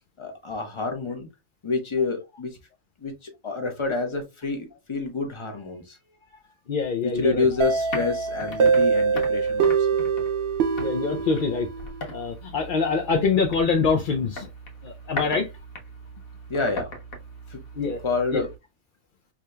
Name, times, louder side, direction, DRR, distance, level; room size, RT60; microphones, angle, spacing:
voice 1, 0.2-1.3 1.6-2.6 3.0-6.0 6.3-6.4 7.0-9.9 16.5-16.9 17.5-17.6 18.0-18.5, left 4 dB, 25° left, 0.8 m, -28 dB
voice 2, 6.7-7.5 10.8-11.7 12.1-14.5 14.8-15.5 17.8-18.0 18.3-18.4, left 5 dB, 65° left, 0.5 m, -24 dB
sound 1, 7.1-18.6, equal, 80° left, 1.4 m, -39 dB
sound 2, 7.6-12.3, right 5 dB, 65° right, 0.6 m, -24 dB
4.8 x 2.8 x 2.2 m
omnidirectional pair, 1.4 m